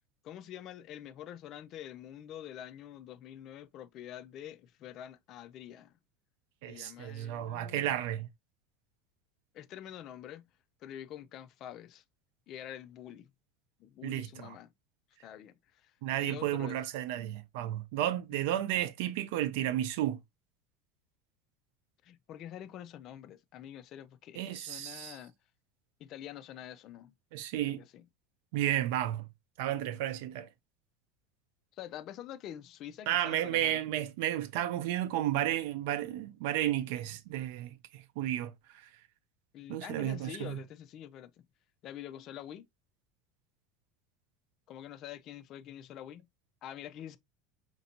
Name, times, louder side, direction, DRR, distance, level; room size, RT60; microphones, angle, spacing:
voice 1, 0.2-6.0 6.7-8.0 9.5-10.5 10.8-12.0 12.5-13.3 13.8-14.7 15.2-16.8 18.3-18.5 22.0-25.3 26.0-27.1 27.6-28.0 31.7-33.8 39.5-41.4 41.8-42.7 44.7-46.3 46.6-47.2, left 11 dB, 45° left, 0.4 m, -46 dB
voice 2, 6.6-8.3 14.0-14.5 16.0-20.2 24.4-25.2 27.3-27.8 28.5-29.3 29.6-30.5 33.1-38.5 39.7-40.6, right 12 dB, 75° right, 0.5 m, -32 dB
5.2 x 2.6 x 2.8 m
supercardioid pair, 135°, 0 cm